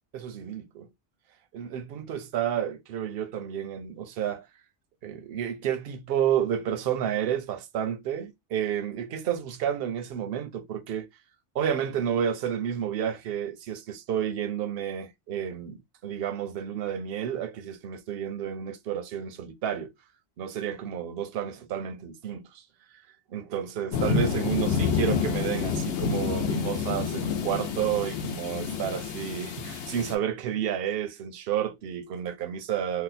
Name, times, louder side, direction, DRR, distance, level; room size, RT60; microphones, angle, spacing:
voice 1, 0.1-0.9 1.5-4.5 5.0-11.1 11.5-19.9 20.4-22.6 23.3-33.0, right 9 dB, 65° right, 0.7 m, -31 dB
sound 1, 23.9-30.1, left 6 dB, 75° left, 0.9 m, -28 dB
2.7 x 2.1 x 4.0 m
omnidirectional pair, 1.2 m